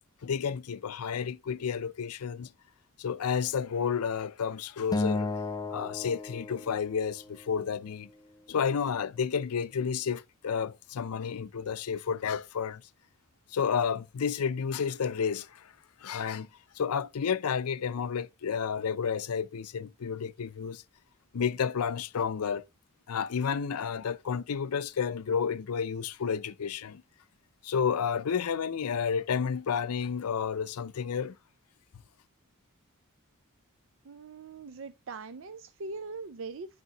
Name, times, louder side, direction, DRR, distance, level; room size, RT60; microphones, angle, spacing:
voice 1, 0.2-2.5 3.0-5.3 5.7-8.1 8.5-12.8 13.5-15.7 16.0-16.5 16.7-20.8 21.3-22.6 23.1-27.0 27.6-31.4, left 6 dB, 85° left, 0.5 m, -31 dB
Acoustic guitar, 4.9-7.3, left 3 dB, 15° left, 0.3 m, -33 dB
voice 2, 34.0-36.8, right 3 dB, 60° right, 0.5 m, -41 dB
11.0 x 3.6 x 2.9 m
head